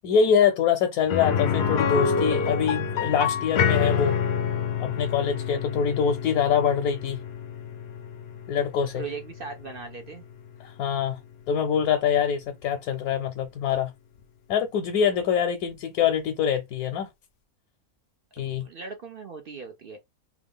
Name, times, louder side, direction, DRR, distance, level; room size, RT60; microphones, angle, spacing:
voice 1, 0.0-4.1 4.8-7.2 8.5-9.0 10.6-11.2 11.5-13.9 14.5-17.1 18.4-18.6, left 7 dB, 80° left, 1.1 m, -24 dB
sound 1, 1.1-10.9 11.2-11.3 13.7-13.8, left 6 dB, 65° left, 0.6 m, -28 dB
voice 2, 8.9-10.3 18.4-20.0, right 5 dB, 60° right, 0.6 m, -39 dB
2.9 x 2.4 x 3.5 m
omnidirectional pair, 1.5 m